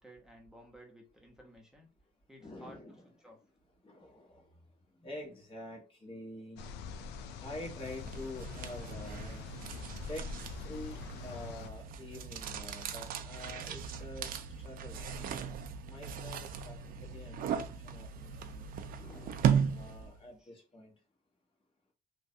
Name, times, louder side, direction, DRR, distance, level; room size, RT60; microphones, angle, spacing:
voice 1, 0.0-1.9 2.3-3.4 9.4-10.1 14.6-14.7 18.2-18.6 19.0-19.3 20.4-20.5, right 1 dB, 5° right, 0 dB, 0.9 m, -57 dB
voice 2, 2.4-3.0 3.8-4.5 5.0-6.7 7.4-9.5 10.1-10.4 10.6-11.0 11.2-20.9, left 1 dB, 30° left, -1 dB, 1.3 m, -47 dB
sound 1, 6.6-11.7, left 5 dB, 90° left, 0.4 m, -44 dB
sound 2, 7.8-20.2, right 8 dB, 55° right, 0.4 m, -37 dB
3.1 x 2.3 x 2.7 m, 0.35 s
cardioid pair, 110°, 17 cm